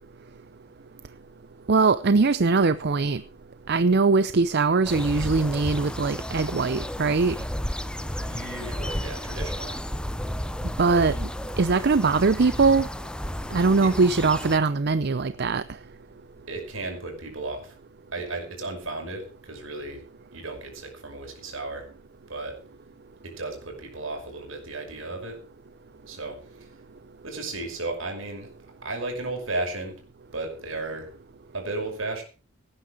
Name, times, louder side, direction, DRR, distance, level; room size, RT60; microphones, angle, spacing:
voice 1, 1.7-3.2 3.7-7.4 10.8-11.3 11.6-12.9 13.5-15.6, right 4 dB, 55° right, 0.6 m, -21 dB
sound 1, 4.8-14.6, equal, 5° left, 0.7 m, -32 dB
voice 2, 8.1-9.8 13.8-13.9 16.5-17.7 18.1-20.0 20.3-21.9 22.3-22.6 23.2-25.4 26.0-26.7 27.2-28.5 28.8-30.0 30.3-31.1 31.5-32.2, right 2 dB, 75° right, 5.8 m, -34 dB
18.0 x 10.0 x 4.9 m
head